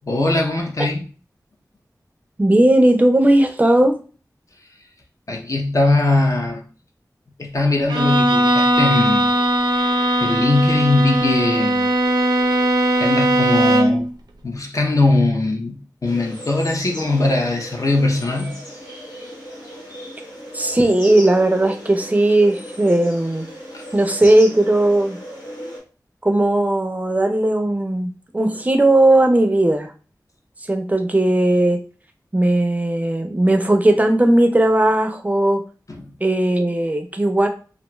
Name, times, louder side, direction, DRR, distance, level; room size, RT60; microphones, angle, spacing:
voice 1, 0.0-1.0 5.3-6.6 7.4-9.3 9.6-9.9 10.2-11.9 13.0-14.1 14.4-18.6 23.7-23.8 35.9-36.0, left 2 dB, 50° left, 0.6 m, -20 dB
voice 2, 2.4-4.0 20.5-23.5 23.9-25.2 26.2-29.9 30.7-31.8 32.3-35.6 36.2-37.5, right 1 dB, 20° right, 0.4 m, -17 dB
Bowed string instrument, 7.9-14.1, right 1 dB, 90° right, 0.4 m, -18 dB
sound 1, 16.0-25.8, equal, 85° left, 1.1 m, -36 dB
2.5 x 2.2 x 3.0 m
wide cardioid pair, 80°, 7 cm